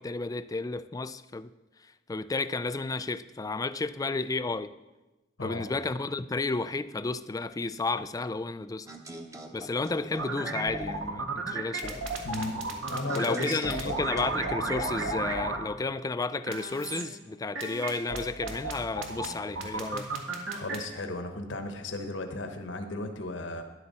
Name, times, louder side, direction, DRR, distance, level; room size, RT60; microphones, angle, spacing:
voice 1, 0.0-1.5 1.8-4.7 5.4-8.9 9.5-12.0 13.1-20.1, left 3 dB, 20° left, 13 dB, 0.3 m, -32 dB
sound 1, 8.9-11.1 13.1-15.3, right 1 dB, 15° right, 1.0 m, -42 dB
sound 2, 10.1-15.6 16.5-17.0 17.5-20.8, right 3 dB, 80° right, 1.7 m, -33 dB
voice 2, 12.2-12.6 12.9-13.8 20.5-23.6, left 2 dB, 70° left, 5 dB, 1.2 m, -35 dB
12.5 x 11.0 x 4.2 m, 1.1 s
head